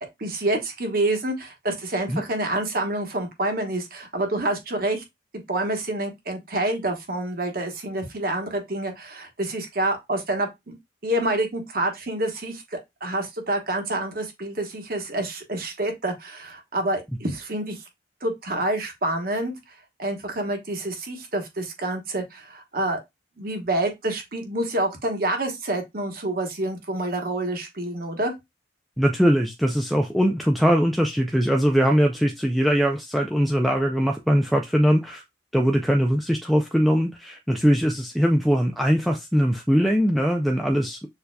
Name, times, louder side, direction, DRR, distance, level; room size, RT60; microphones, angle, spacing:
voice 1, 0.2-5.0 5.5-10.7 11.0-17.8 18.2-19.5 20.0-23.0 23.4-28.3, right 1 dB, 50° right, 1.1 m, -27 dB
voice 2, 29.0-35.2 35.5-41.1, equal, ahead, 0.3 m, -21 dB
6.6 x 2.8 x 2.2 m
head